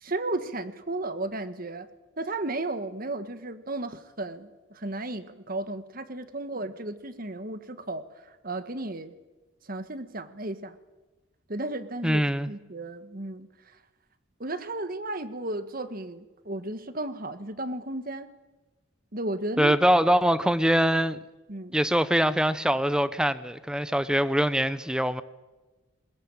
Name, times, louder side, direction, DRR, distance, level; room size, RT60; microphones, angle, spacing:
voice 1, 0.0-1.9 2.2-8.0 8.4-9.1 9.7-10.7 11.5-12.2 12.5-13.5 14.4-18.3 19.1-19.8 21.5-21.8, right 2 dB, 45° right, 1.6 m, -34 dB
voice 2, 12.0-12.5 19.6-21.2 21.7-25.2, equal, 5° right, 0.9 m, -23 dB
21.5 x 20.0 x 9.0 m
head